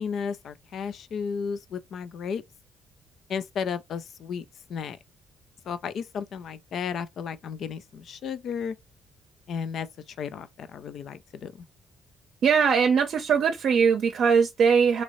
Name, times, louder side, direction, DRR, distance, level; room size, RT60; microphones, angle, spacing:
voice 1, 0.0-2.4 3.3-4.4 4.7-5.0 5.7-8.8 9.5-9.9 10.2-11.6, left 6 dB, 65° left, 0.4 m, -33 dB
voice 2, 12.4-15.0, right 6 dB, 65° right, 0.6 m, -21 dB
3.0 x 2.6 x 3.0 m
cardioid pair, 90°, 0 cm